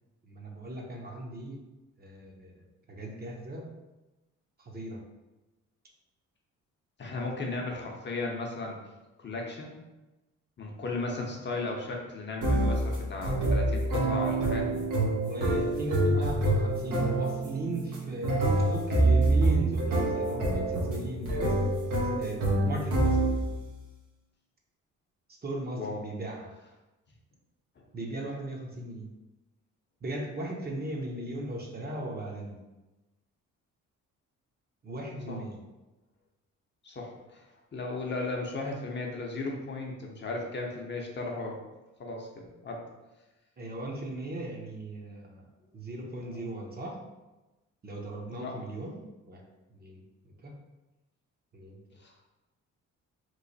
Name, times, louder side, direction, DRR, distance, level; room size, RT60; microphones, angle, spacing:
voice 1, 0.2-1.6 2.0-3.7 4.6-5.0 15.2-21.6 22.2-23.3 25.3-26.5 27.9-29.1 30.0-32.6 34.8-35.6 43.6-45.5 45.7-47.0 47.8-48.9 49.3-49.4 49.7-50.5 51.5-51.8, right 1 dB, 30° right, -1 dB, 0.7 m, -37 dB
voice 2, 7.0-8.8 9.2-9.7 10.6-14.8 16.1-16.3 25.8-26.0 27.8-27.9 35.3-35.4 36.8-37.5 37.7-41.6 42.0-42.9 48.3-48.6 52.0-52.1, left 2 dB, 35° left, -1 dB, 0.7 m, -36 dB
sound 1, 12.4-23.6, right 2 dB, 85° right, 0.9 m, -26 dB
3.1 x 2.1 x 3.9 m, 1.1 s
cardioid pair, 90°, 30 cm